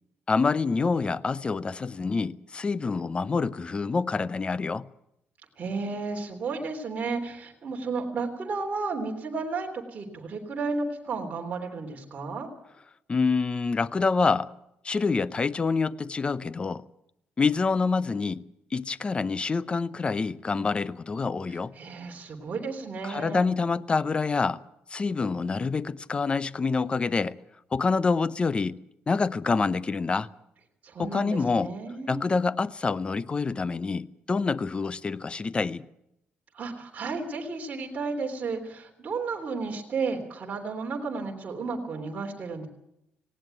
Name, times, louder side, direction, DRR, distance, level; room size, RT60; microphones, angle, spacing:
voice 1, 0.3-4.9 13.1-14.5 14.8-16.8 17.4-21.7 23.0-24.6 24.9-27.4 27.7-30.3 31.0-31.7 32.1-35.9, left 4 dB, 25° left, 0.7 m, -27 dB
voice 2, 5.6-12.5 21.8-23.5 30.8-32.2 36.5-42.7, right 4 dB, 40° right, 3.4 m, -33 dB
18.5 x 17.0 x 9.1 m
cardioid pair, 115°, 4 cm